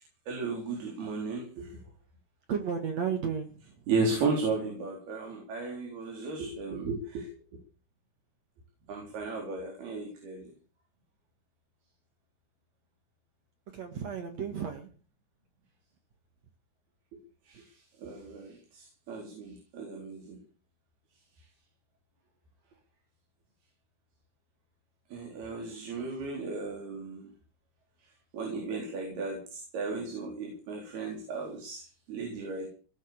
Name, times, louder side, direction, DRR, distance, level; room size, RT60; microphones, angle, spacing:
voice 1, 0.3-1.8 3.9-7.3 8.9-10.5 17.5-20.4 25.1-27.3 28.3-32.7, right 4 dB, 80° right, 1 dB, 6.0 m, -35 dB
voice 2, 2.5-3.9 8.9-9.1 13.7-14.9, right 7 dB, 50° right, 6 dB, 2.6 m, -34 dB
19.0 x 8.1 x 8.6 m, 0.39 s
omnidirectional pair, 4.5 m